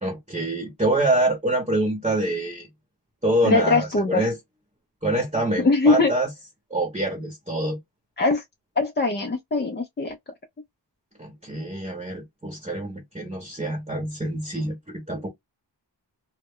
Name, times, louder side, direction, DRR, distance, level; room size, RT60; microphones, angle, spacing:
voice 1, 0.0-2.7 3.2-4.4 5.0-6.3 6.7-7.8 11.2-15.3, right 1 dB, 15° right, 0.8 m, -25 dB
voice 2, 3.4-4.2 5.6-6.1 8.2-8.4 8.8-10.1, left 3 dB, 25° left, 0.4 m, -21 dB
2.1 x 2.0 x 3.5 m
wide cardioid pair, 100°, 44 cm